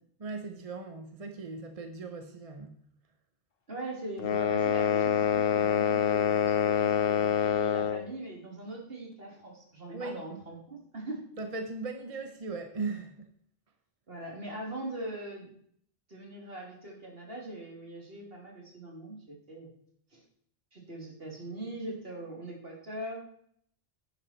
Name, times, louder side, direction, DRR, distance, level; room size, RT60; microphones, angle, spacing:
voice 1, 0.2-2.7 9.9-10.2 11.4-13.3, right 3 dB, 35° right, 1.0 m, -38 dB
voice 2, 3.7-11.2 14.1-15.5 16.1-19.2 19.5-19.7 20.1-20.2 20.7-23.2, right 1 dB, 65° right, 3.5 m, -41 dB
sound 1, 4.2-8.1, left 8 dB, 65° left, 0.9 m, -26 dB
10.5 x 10.5 x 4.5 m
omnidirectional pair, 1.1 m